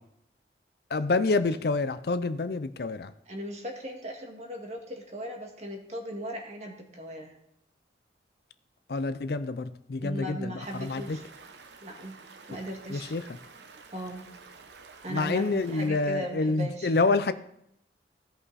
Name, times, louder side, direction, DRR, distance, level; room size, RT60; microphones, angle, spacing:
voice 1, 0.9-3.1 8.9-11.2 12.9-13.3 15.1-17.3, left 3 dB, 60° left, 13 dB, 0.5 m, -27 dB
voice 2, 3.3-7.4 10.0-11.2 11.8-12.1 12.5-13.1 13.9-14.3 15.0-16.9, equal, 40° right, 1 dB, 1.9 m, -38 dB
Stream, 10.6-15.9, right 4 dB, 70° right, 0.9 m, -50 dB
16.0 x 5.6 x 4.1 m, 0.76 s
head